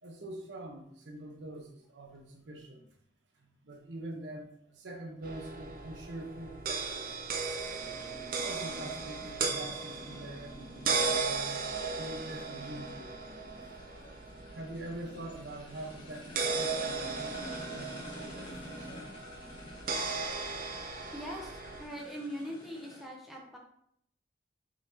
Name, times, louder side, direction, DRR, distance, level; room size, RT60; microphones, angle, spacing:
voice 1, 0.0-2.9 3.4-7.1 8.2-11.7 12.0-13.1 14.5-18.9, right 1 dB, 80° right, 1 dB, 0.9 m, -44 dB
sound 1, 5.2-21.8, right 4 dB, 50° right, 0.4 m, -36 dB
sound 2, 7.6-23.0, left 1 dB, 25° left, 1.0 m, -49 dB
voice 2, 21.1-23.6, equal, ahead, -2 dB, 0.6 m, -41 dB
4.7 x 4.0 x 2.8 m, 0.71 s
head